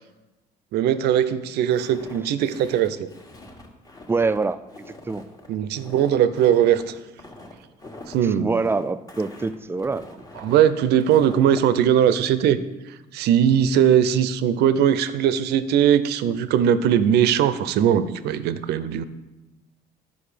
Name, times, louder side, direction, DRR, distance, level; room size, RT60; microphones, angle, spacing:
voice 1, 0.7-3.1 5.5-7.0 8.1-8.5 10.4-12.6 13.1-19.0, right 9 dB, 75° right, 13 dB, 0.6 m, -20 dB
Walk footsteps, 1.7-11.7, left 2 dB, 20° left, 1.4 m, -44 dB
voice 2, 4.1-4.6 5.1-5.2 8.2-10.1, right 3 dB, 15° right, 13 dB, 0.4 m, -24 dB
11.0 x 5.3 x 5.0 m, 1.1 s
cardioid pair, 110°, 17 cm